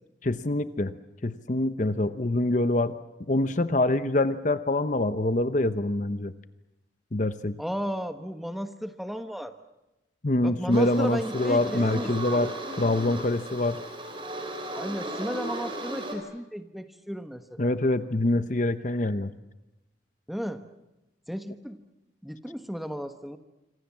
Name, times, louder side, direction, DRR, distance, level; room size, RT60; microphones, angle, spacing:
voice 1, 0.2-0.9 1.2-3.0 3.3-6.3 7.1-7.6 10.2-13.8 17.6-19.3, left 2 dB, 40° left, 12 dB, 0.9 m, -25 dB
voice 2, 7.6-9.5 10.4-12.5 14.7-17.7 20.3-20.6 21.3-21.8 22.2-23.4, equal, ahead, 8 dB, 1.2 m, -34 dB
sound 1, 10.7-16.2, right 1 dB, 30° right, 4.8 m, -36 dB
26.0 x 26.0 x 7.4 m, 0.97 s
head